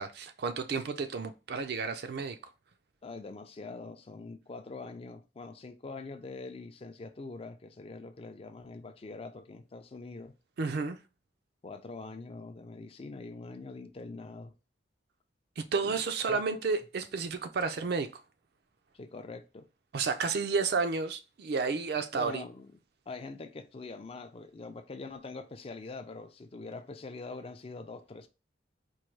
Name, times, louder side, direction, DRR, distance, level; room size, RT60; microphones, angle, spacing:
voice 1, 0.0-2.4 10.6-11.0 15.6-18.1 19.9-22.4, right 4 dB, 60° right, 0.4 m, -31 dB
voice 2, 3.0-10.3 11.6-14.5 15.8-15.9 16.3-16.6 18.9-19.7 22.1-22.7 23.1-28.3, left 3 dB, 30° left, 0.4 m, -44 dB
4.5 x 2.2 x 3.1 m
head